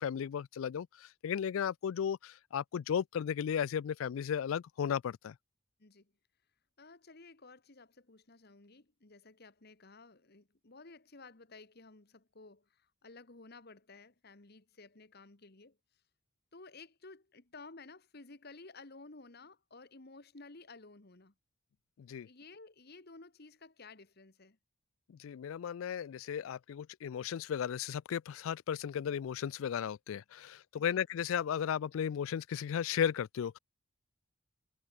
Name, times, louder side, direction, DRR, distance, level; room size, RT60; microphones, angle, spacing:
voice 1, 0.0-5.3 22.0-22.3 25.1-33.6, left 8 dB, 75° left, 0.3 m, -35 dB
voice 2, 6.8-16.0 16.5-21.3 22.2-24.6 30.8-31.0, left 3 dB, 50° left, 1.5 m, -54 dB
head